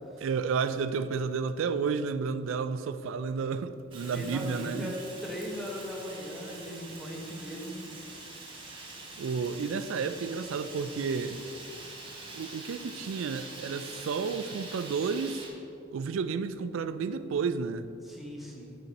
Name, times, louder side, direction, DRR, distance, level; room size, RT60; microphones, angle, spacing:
voice 1, 0.2-4.9 9.2-11.4 12.3-15.5 15.9-17.9, right 5 dB, 70° right, 12 dB, 0.3 m, -31 dB
Fire, 3.9-15.5, right 2 dB, 25° right, 0.9 m, -45 dB
voice 2, 4.0-7.8 18.0-18.8, equal, ahead, -3 dB, 0.9 m, -39 dB
6.5 x 5.9 x 4.1 m, 2.6 s
head